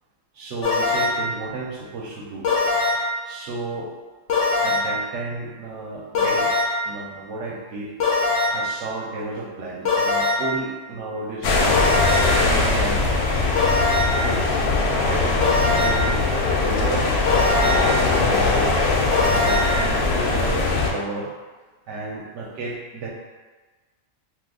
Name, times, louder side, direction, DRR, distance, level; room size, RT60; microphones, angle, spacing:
voice 1, 0.4-2.5 3.2-3.9 4.6-6.5 6.8-7.9 8.5-11.8 12.3-13.3 14.1-18.7 19.4-21.3 21.9-23.1, right 3 dB, 75° right, -2 dB, 0.9 m, -32 dB
sound 1, 0.6-1.3 2.4-3.2 4.3-5.0 6.1-6.9 8.0-8.7 9.8-10.6 11.7-12.4 13.6-14.3 15.4-16.1 17.3-18.0 19.1-19.8, left 3 dB, 85° left, 1.0 m, -22 dB
sound 2, 11.4-20.9, left 3 dB, 65° left, 0.7 m, -21 dB
2.6 x 2.3 x 3.5 m, 1.3 s
omnidirectional pair, 1.3 m